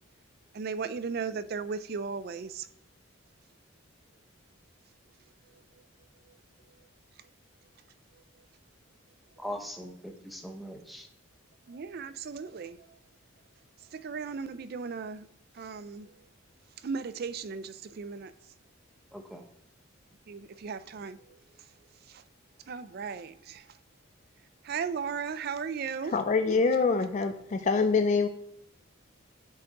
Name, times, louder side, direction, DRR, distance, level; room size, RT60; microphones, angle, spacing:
voice 1, 0.5-2.7 5.5-5.8 6.3-6.4 6.8-6.9 8.1-8.2 11.7-13.0 13.8-15.3 15.5-16.2 16.8-18.3 20.3-21.7 22.0-22.2 22.7-23.8 24.6-26.1, right 5 dB, 50° right, 0.3 m, -37 dB
voice 2, 9.4-11.1 19.1-19.4, equal, ahead, 0.7 m, -40 dB
voice 3, 26.1-28.3, left 4 dB, 35° left, 0.3 m, -25 dB
9.4 x 5.1 x 2.9 m
head